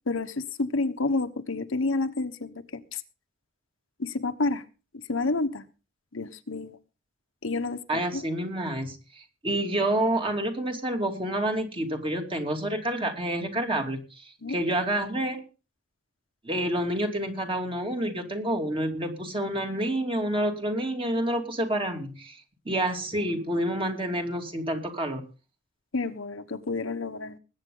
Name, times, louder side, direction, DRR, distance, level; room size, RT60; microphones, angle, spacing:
voice 1, 0.1-3.0 4.0-4.6 5.1-5.6 6.1-6.8 7.4-8.2 14.4-14.6 25.9-27.4, left 3 dB, 70° left, 8 dB, 1.2 m, -29 dB
voice 2, 7.9-15.4 16.4-25.2, right 1 dB, 25° right, 3 dB, 2.7 m, -28 dB
20.5 x 8.9 x 3.8 m, 0.33 s
head